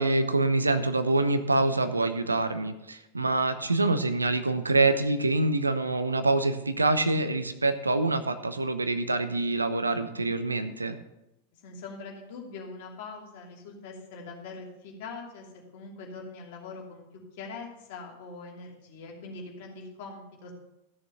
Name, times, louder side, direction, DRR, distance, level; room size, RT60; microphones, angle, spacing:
voice 1, 0.0-11.0, right 2 dB, 80° right, 11 dB, 0.8 m, -25 dB
voice 2, 11.5-17.0 17.3-20.5, left 4 dB, 50° left, -1 dB, 2.8 m, -42 dB
14.0 x 6.6 x 5.8 m, 0.91 s
figure-of-eight pair, 90°, 0 cm